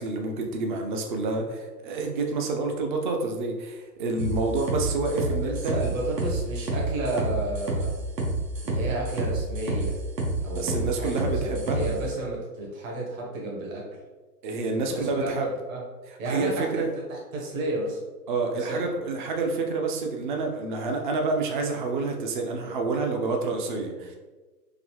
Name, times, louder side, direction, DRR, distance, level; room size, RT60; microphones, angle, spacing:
voice 1, 0.0-5.8 10.5-12.1 14.4-15.5 16.2-17.0 18.3-24.2, right 3 dB, 35° right, 3 dB, 0.4 m, -28 dB
sound 1, 4.2-12.0, right 2 dB, 80° right, 1.1 m, -28 dB
voice 2, 5.3-8.0 8.6-10.0 10.4-13.8 15.0-15.4 15.7-15.8 16.2-16.8 17.1-18.0 18.5-18.9, right 2 dB, 55° right, -2 dB, 1.4 m, -32 dB
3.9 x 2.7 x 3.1 m, 1.3 s
figure-of-eight pair, 115°, 49 cm